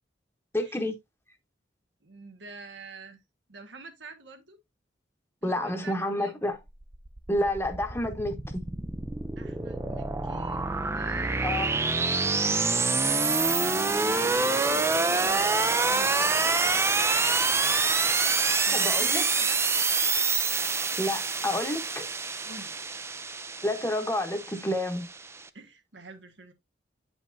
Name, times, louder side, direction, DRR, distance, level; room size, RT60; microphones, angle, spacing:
voice 1, 0.5-1.0 5.4-6.6 7.3-8.7 11.4-11.8 18.7-19.2 21.0-22.1 23.6-25.1, left 1 dB, 15° left, 1.1 m, -29 dB
voice 2, 2.0-3.2 3.5-4.6 5.4-6.3 9.4-10.7 10.9-11.9 13.8-16.6 18.7-19.6 22.4-22.9 25.5-26.5, right 3 dB, 90° right, 1.4 m, -46 dB
sound 1, 6.7-25.4, right 4 dB, 15° right, 0.4 m, -26 dB
8.8 x 5.4 x 2.6 m
head